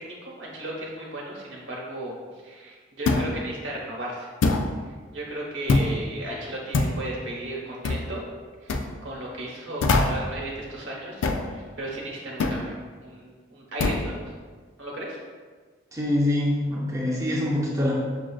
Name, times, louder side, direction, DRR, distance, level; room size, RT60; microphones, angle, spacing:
voice 1, 0.0-2.1 2.4-4.3 4.9-8.2 8.6-14.2 14.8-15.2, right 1 dB, 80° right, -3 dB, 0.9 m, -35 dB
sound 1, 3.1-3.4 4.4-4.7 5.7-6.0 6.7-7.0 7.8-8.1 8.7-8.9 9.8-10.3 11.2-11.5 12.4-12.6 13.8-14.1, left 3 dB, 85° left, 0.3 m, -23 dB
voice 2, 15.9-17.9, left 1 dB, 15° right, -5 dB, 0.5 m, -24 dB
6.0 x 2.4 x 2.3 m, 1.5 s
head